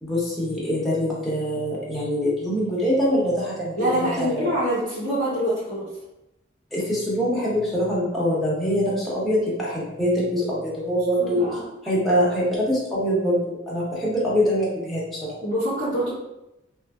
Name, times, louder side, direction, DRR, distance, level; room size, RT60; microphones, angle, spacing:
voice 1, 0.0-4.5 6.7-11.4 11.8-15.4, equal, ahead, -8 dB, 0.7 m, -24 dB
voice 2, 3.8-5.9 11.2-11.6 15.4-16.1, right 1 dB, 75° right, -14 dB, 1.3 m, -25 dB
3.1 x 2.5 x 2.2 m, 0.92 s
head